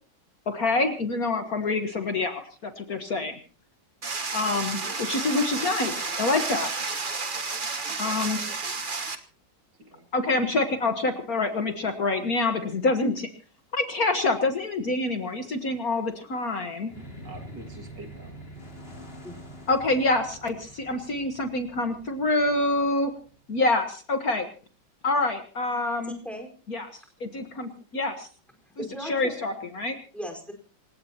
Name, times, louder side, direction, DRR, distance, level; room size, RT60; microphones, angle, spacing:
voice 1, 0.5-3.4 4.3-6.7 8.0-8.4 10.1-13.3 13.7-16.9 19.7-23.1 23.5-24.5 25.0-26.2 26.7-26.9 27.2-28.3 28.8-30.0, left 2 dB, 50° left, 6 dB, 1.8 m, -26 dB
sound 1, 4.0-9.2, right 4 dB, 30° right, 1.2 m, -31 dB
voice 2, 7.9-8.6 9.9-10.1 17.2-18.3, right 2 dB, 65° right, 4 dB, 2.9 m, -47 dB
sound 2, 16.9-23.4, right 1 dB, 30° left, 3.3 m, -45 dB
voice 3, 26.1-26.5 28.8-29.3 30.1-30.5, equal, ahead, 3 dB, 4.6 m, -37 dB
27.5 x 16.5 x 2.9 m, 0.40 s
omnidirectional pair, 2.1 m